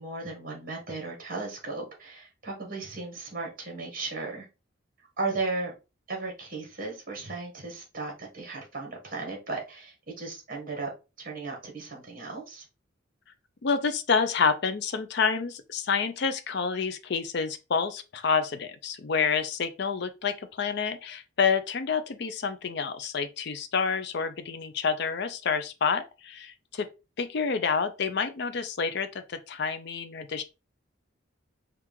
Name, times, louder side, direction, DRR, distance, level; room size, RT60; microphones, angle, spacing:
voice 1, 0.0-4.5 5.2-5.7 6.1-10.9 11.2-12.6, right 3 dB, 45° right, 1.6 m, -35 dB
voice 2, 13.6-26.9 27.2-30.4, left 5 dB, 55° left, 0.5 m, -28 dB
4.4 x 2.4 x 3.6 m
head